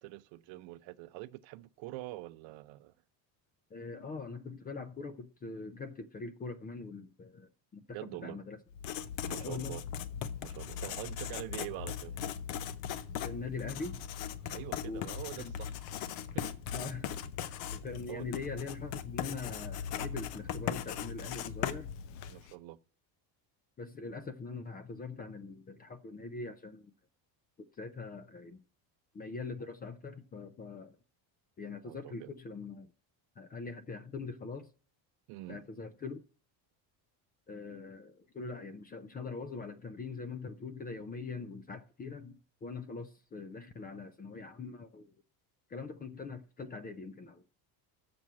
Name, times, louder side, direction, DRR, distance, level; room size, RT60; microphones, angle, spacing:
voice 1, 0.0-2.9 7.9-8.4 9.3-9.8 10.4-12.2 14.4-15.7 16.2-16.5 18.1-18.3 22.3-22.8 31.8-32.3 35.3-35.6, right 18 dB, 70° right, 0.6 m, -45 dB
voice 2, 3.7-8.6 9.4-9.8 10.8-10.9 13.2-14.0 14.8-15.1 15.4-15.6 16.7-17.1 17.7-21.9 23.8-26.9 27.8-28.6 29.1-31.0 31.6-32.9 33.4-34.7 35.5-36.2 37.5-45.1 45.7-47.4, left 4 dB, 20° left, 0.4 m, -42 dB
Writing, 8.7-22.5, left 9 dB, 70° left, 0.8 m, -39 dB
6.9 x 6.1 x 7.3 m
cardioid pair, 150°, 47 cm